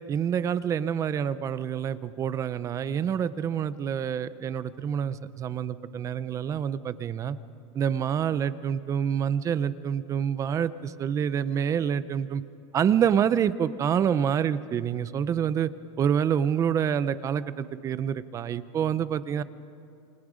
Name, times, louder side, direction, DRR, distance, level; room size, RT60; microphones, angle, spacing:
voice 1, 0.1-7.4 7.7-12.4 12.7-15.7 16.0-19.4, right 8 dB, 20° right, 15 dB, 0.6 m, -27 dB
28.5 x 26.0 x 5.0 m, 2.7 s
supercardioid pair, 160°, 15 cm